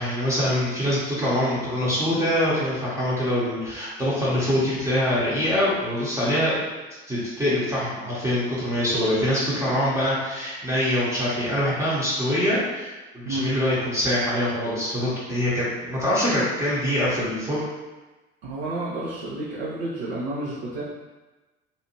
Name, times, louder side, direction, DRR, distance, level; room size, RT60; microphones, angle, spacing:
voice 1, 0.0-6.6 7.1-17.6, left 1 dB, 10° right, -9 dB, 0.8 m, -24 dB
voice 2, 18.4-20.8, right 1 dB, 65° right, -7 dB, 0.6 m, -30 dB
2.7 x 2.4 x 2.8 m, 1.2 s
figure-of-eight pair, 60°, 34 cm